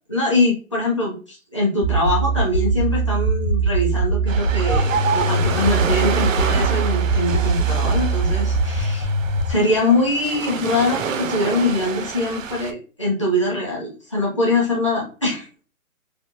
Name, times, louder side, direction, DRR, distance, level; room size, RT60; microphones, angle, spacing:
voice 1, 0.1-9.1 9.5-15.6, left 2 dB, 20° left, -4 dB, 0.7 m, -23 dB
sound 1, 1.8-9.5, right 3 dB, 80° left, 1.2 m, -21 dB
Ocean, 4.3-12.7, right 6 dB, 65° right, 0.5 m, -28 dB
3.3 x 2.1 x 2.7 m, 0.36 s
hypercardioid pair, 175°, 42 cm